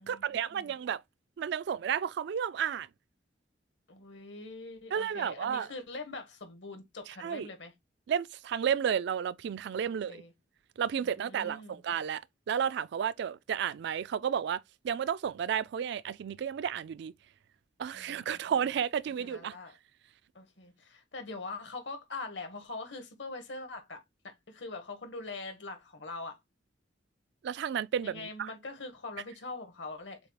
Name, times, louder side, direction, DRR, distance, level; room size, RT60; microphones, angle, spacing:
voice 1, 0.1-1.0 1.4-2.9 4.9-5.7 7.1-7.5 8.1-10.2 10.8-12.2 12.5-17.1 17.8-19.6 27.4-28.5, right 8 dB, 65° right, 0.3 m, -32 dB
voice 2, 3.9-7.7 10.1-10.3 11.0-11.8 17.9-18.4 19.2-19.8 20.3-26.4 28.0-30.2, left 3 dB, 75° left, 1.4 m, -43 dB
6.9 x 2.3 x 3.3 m
head